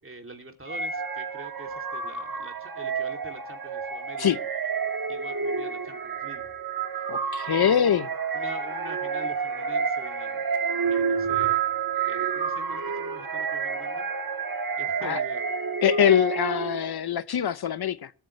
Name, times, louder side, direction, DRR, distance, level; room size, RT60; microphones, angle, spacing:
voice 1, 0.0-4.3 5.1-6.5 6.9-8.0 8.3-10.5 10.9-11.6 12.1-14.0 14.8-15.4, right 2 dB, 30° right, 2.9 m, -45 dB
sound 1, 0.7-16.9, right 6 dB, 55° right, 1.7 m, -29 dB
voice 2, 7.1-8.1 15.0-15.2 15.8-18.1, left 9 dB, 65° left, 0.7 m, -23 dB
20.0 x 8.6 x 3.3 m
cardioid pair, 65°, 42 cm